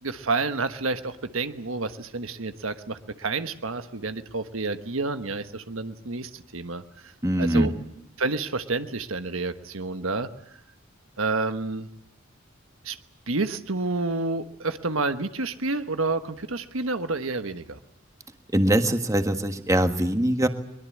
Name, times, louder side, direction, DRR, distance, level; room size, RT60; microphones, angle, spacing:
voice 1, 0.0-7.1 7.4-7.7 8.2-10.3 11.2-11.9 12.8-13.0 13.3-17.8, right 3 dB, 80° right, 9 dB, 1.3 m, -29 dB
voice 2, 7.2-7.7 18.5-20.5, right 1 dB, 15° right, 7 dB, 1.6 m, -22 dB
22.5 x 22.0 x 8.5 m, 0.77 s
head